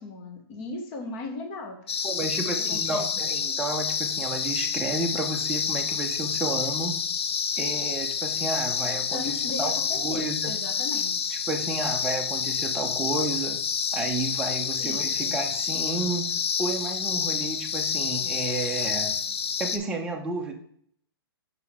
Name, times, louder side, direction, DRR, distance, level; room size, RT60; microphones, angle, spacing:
voice 1, 0.0-2.0 2.4-3.1 9.1-11.3 14.8-15.4, left 3 dB, 35° left, 4 dB, 1.1 m, -37 dB
sound 1, 1.9-19.8, left 6 dB, 80° left, 0.7 m, -28 dB
voice 2, 2.0-7.0 7.6-10.6 11.3-13.6 13.9-19.1 19.6-20.5, right 2 dB, 5° right, 1 dB, 0.6 m, -31 dB
6.6 x 5.2 x 3.6 m, 0.65 s
hypercardioid pair, 150°, 13 cm